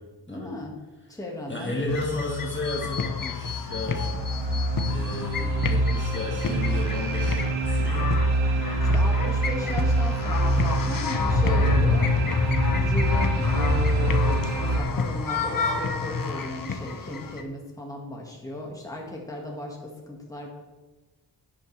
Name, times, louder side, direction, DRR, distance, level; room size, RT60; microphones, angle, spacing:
voice 1, 0.3-0.7 1.1-1.9 8.7-12.1 12.7-20.5, left 1 dB, 5° left, -1 dB, 1.8 m, -36 dB
voice 2, 1.5-4.1 4.9-8.1, left 1 dB, 25° left, -2 dB, 1.6 m, -33 dB
sound 1, 1.9-17.4, left 5 dB, 45° left, 0.9 m, -29 dB
sound 2, 3.4-14.8, right 2 dB, 75° right, 1.3 m, -25 dB
10.5 x 10.0 x 3.3 m, 1.2 s
wide cardioid pair, 130°, 45 cm